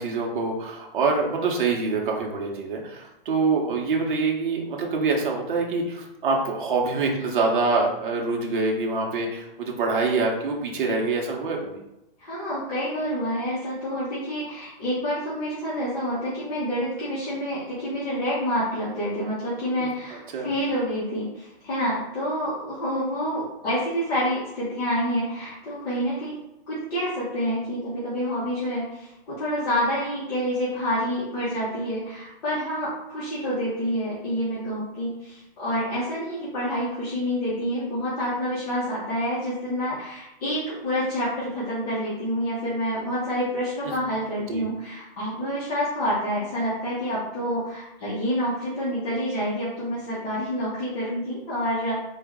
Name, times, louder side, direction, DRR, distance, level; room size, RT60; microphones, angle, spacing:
voice 1, 0.0-11.8 19.8-19.9 20.3-20.5 43.8-43.9 44.5-44.7, right 3 dB, 55° right, 0 dB, 0.9 m, -25 dB
voice 2, 12.2-26.4 26.7-52.0, equal, 40° left, -10 dB, 1.3 m, -28 dB
4.0 x 2.4 x 3.6 m, 0.90 s
hypercardioid pair, 175°, 30 cm